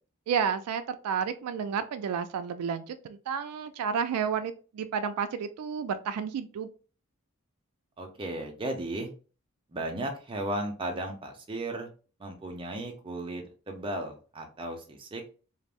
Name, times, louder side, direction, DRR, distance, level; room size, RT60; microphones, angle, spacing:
voice 1, 0.3-6.7, right 7 dB, 85° right, 14 dB, 0.3 m, -31 dB
voice 2, 8.0-9.1 9.7-11.9 12.2-15.2, right 1 dB, 20° right, 3 dB, 0.5 m, -35 dB
2.4 x 2.0 x 3.4 m, 0.36 s
head